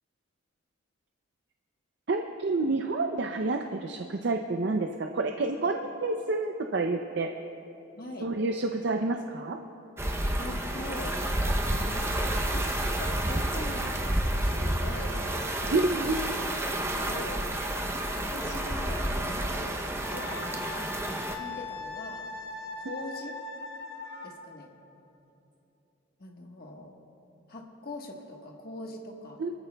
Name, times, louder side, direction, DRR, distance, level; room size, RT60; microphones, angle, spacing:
voice 1, 2.1-7.3 8.2-9.6 15.7-16.2 29.4-29.5, right 3 dB, 55° right, 5 dB, 0.5 m, -29 dB
voice 2, 7.9-8.4 10.2-11.4 11.7-17.4 18.2-19.7 20.1-20.6 21.0-22.3 22.8-23.3 24.2-24.7 26.2-26.9 27.5-29.4, left 1 dB, 45° left, 0 dB, 1.3 m, -42 dB
sound 1, 10.0-21.4, right 1 dB, 10° right, 0.6 m, -30 dB
Wind instrument woodwind instrument, 20.0-24.4, left 3 dB, 65° left, 1.5 m, -40 dB
23.5 x 14.0 x 2.3 m, 2.8 s
head